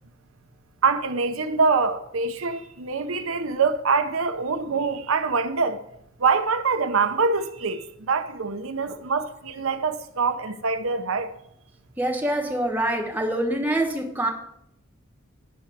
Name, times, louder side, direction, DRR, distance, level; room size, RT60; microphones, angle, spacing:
voice 1, 0.8-5.8 6.2-11.3, right 4 dB, 80° right, 0.8 m, -24 dB
voice 2, 12.0-14.3, right 1 dB, 10° right, 1.4 m, -25 dB
11.5 x 4.6 x 7.8 m
head